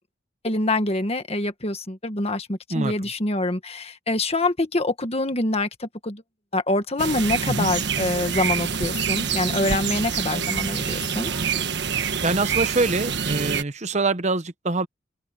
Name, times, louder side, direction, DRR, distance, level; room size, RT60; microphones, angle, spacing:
voice 1, 0.4-6.2 6.5-11.3, left 2 dB, 35° left, 1.7 m, -25 dB
voice 2, 2.7-3.1 7.5-7.7 12.2-14.9, right 3 dB, 40° right, 1.0 m, -24 dB
sound 1, 7.0-13.6, right 6 dB, 65° right, 1.4 m, -26 dB
head